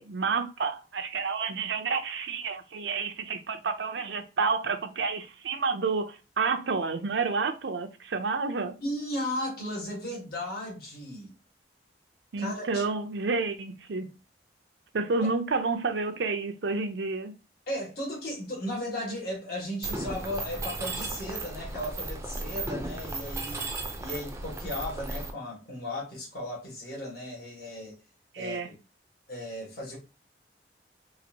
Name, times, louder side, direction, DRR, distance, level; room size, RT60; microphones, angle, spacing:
voice 1, 0.0-8.8 12.3-14.1 14.9-17.3 28.3-28.7, right 4 dB, 80° right, 0.6 m, -30 dB
voice 2, 8.8-11.3 12.4-12.8 15.2-15.3 17.7-23.7 24.0-28.0 28.4-28.7 29.3-30.0, left 1 dB, 60° left, 1.6 m, -35 dB
Mechanisms, 19.8-25.3, right 2 dB, 15° right, 0.5 m, -35 dB
4.0 x 2.5 x 2.8 m
head